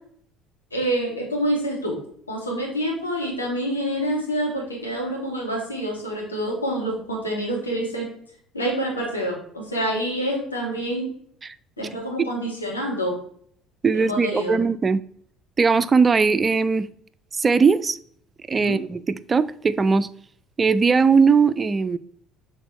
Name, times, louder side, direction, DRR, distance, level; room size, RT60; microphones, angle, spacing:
voice 1, 0.7-2.0 2.3-8.1 8.5-11.1 11.8-13.2 13.9-14.6 18.6-18.8, right 1 dB, 85° left, -2 dB, 1.8 m, -27 dB
voice 2, 13.8-15.0 15.6-16.9 17.4-18.0 18.5-20.1 20.6-22.0, right 5 dB, 25° right, 15 dB, 0.3 m, -19 dB
6.7 x 4.2 x 4.2 m, 0.62 s
figure-of-eight pair, 60°, 0 cm